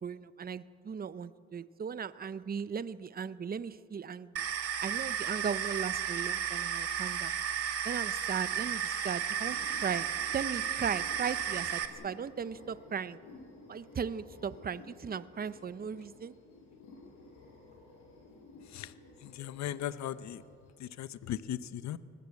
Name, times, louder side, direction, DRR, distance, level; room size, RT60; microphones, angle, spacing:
voice 1, 0.0-4.4 4.8-7.3 7.8-10.1 10.3-13.2 13.7-16.4, right 7 dB, 30° right, 15 dB, 0.7 m, -37 dB
sound 1, 4.4-11.9, right 8 dB, 50° right, 1.8 m, -34 dB
sound 2, 9.4-20.7, left 2 dB, 90° left, 7.2 m, -54 dB
voice 2, 19.2-20.4 20.8-22.0, left 11 dB, 65° left, 14 dB, 0.8 m, -38 dB
24.0 x 18.5 x 8.4 m, 2.3 s
cardioid pair, 90°, 30 cm